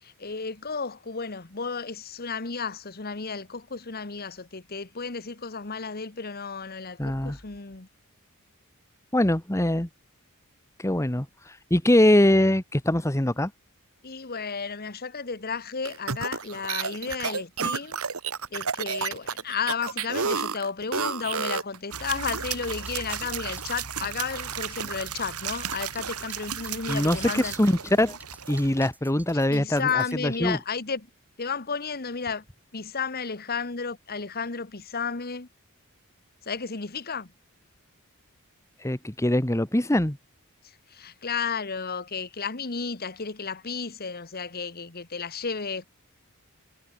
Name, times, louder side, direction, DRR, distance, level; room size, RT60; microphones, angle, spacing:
voice 1, 0.0-7.9 14.0-18.0 18.5-27.5 29.5-31.1 31.4-32.4 32.7-35.5 36.5-37.3 40.9-45.8, left 5 dB, 45° left, 1.4 m, -33 dB
voice 2, 7.0-7.4 9.1-9.9 10.8-13.5 26.9-28.2 28.5-30.6 38.8-40.2, left 1 dB, 15° left, 1.4 m, -23 dB
sound 1, 15.8-21.8, right 5 dB, 70° right, 1.6 m, -30 dB
sound 2, 21.9-28.9, right 8 dB, 90° right, 5.2 m, -35 dB
sound 3, 22.6-30.2, right 2 dB, 5° right, 6.5 m, -49 dB
head